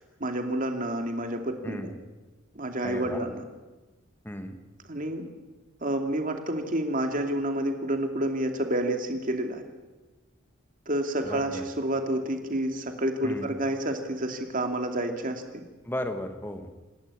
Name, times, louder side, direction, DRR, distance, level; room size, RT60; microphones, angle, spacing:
voice 1, 0.2-1.9 2.5-3.4 4.9-5.3 5.8-9.6 10.9-15.6, right 1 dB, 45° right, 5 dB, 2.5 m, -29 dB
voice 2, 1.6-2.0 2.8-3.2 4.2-4.6 11.2-11.6 13.2-13.5 15.9-16.7, left 1 dB, 10° left, 7 dB, 1.8 m, -35 dB
28.0 x 13.0 x 9.9 m, 1.2 s
head